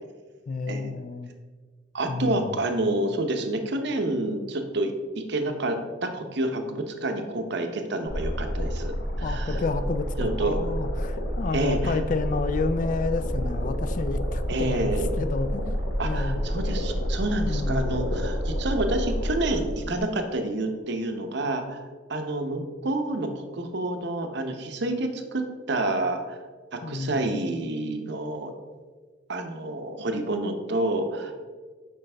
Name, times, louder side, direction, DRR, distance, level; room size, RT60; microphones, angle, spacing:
voice 1, 0.5-1.3 2.1-2.5 9.2-15.8 16.0-16.5 17.5-18.2 26.8-27.3, left 3 dB, 40° left, 12 dB, 0.3 m, -30 dB
voice 2, 1.9-4.9 5.3-9.6 10.2-10.6 11.5-12.0 14.5-15.1 16.0-21.8 22.1-26.4 26.7-28.5 29.3-31.3, right 2 dB, 60° right, 6 dB, 0.7 m, -28 dB
sound 1, 8.0-20.0, equal, 60° left, 1.1 m, -29 dB
7.7 x 5.2 x 3.3 m, 1.4 s
head